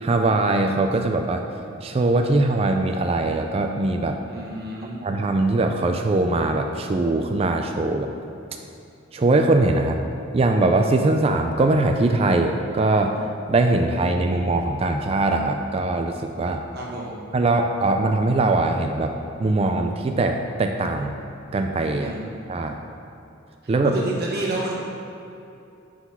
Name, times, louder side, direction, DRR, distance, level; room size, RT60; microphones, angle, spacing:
voice 1, 0.0-1.4 1.8-4.2 5.0-8.1 9.1-10.0 10.3-13.1 13.5-16.6 17.3-19.1 19.4-21.1 21.5-22.2 22.5-22.8 23.7-23.9, right 2 dB, 30° right, 5 dB, 0.3 m, -21 dB
voice 2, 4.3-5.0 16.7-17.2 22.0-22.2 22.5-22.6 23.8-24.7, right 2 dB, 50° right, -4 dB, 1.1 m, -29 dB
8.2 x 3.8 x 5.7 m, 2.7 s
head